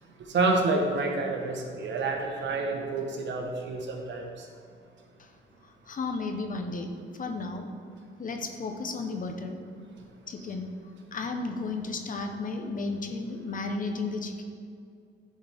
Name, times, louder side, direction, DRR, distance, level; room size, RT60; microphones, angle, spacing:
voice 1, 0.2-4.4, right 3 dB, 65° right, 2 dB, 1.1 m, -28 dB
voice 2, 5.6-6.9 7.2-7.7 8.2-9.6 10.3-10.7 11.1-14.4, left 3 dB, 40° left, 4 dB, 0.9 m, -33 dB
10.5 x 4.3 x 3.6 m, 2.3 s
cardioid pair, 90°, 20 cm